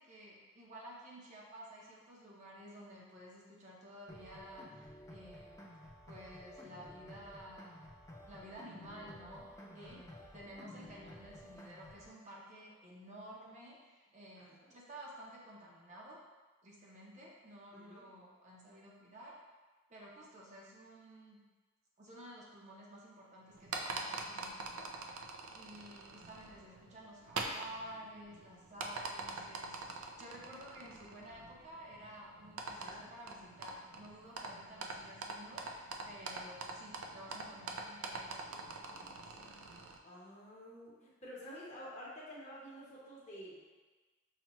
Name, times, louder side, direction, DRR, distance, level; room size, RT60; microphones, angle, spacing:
voice 1, 0.0-5.7 6.1-7.8 8.3-16.2 16.6-19.4 19.9-21.4 22.0-25.3 25.5-39.6, equal, 35° right, -4 dB, 0.6 m, -53 dB
sound 1, 4.1-12.1, left 1 dB, 15° left, 0.3 m, -53 dB
voice 2, 9.6-10.0 14.4-14.7 17.7-18.0 32.7-33.0 39.4-39.6 40.0-43.6, equal, 35° left, -6 dB, 0.9 m, -50 dB
sound 2, 23.5-40.0, right 3 dB, 85° right, 0.4 m, -45 dB
5.6 x 2.2 x 3.0 m, 1.3 s
head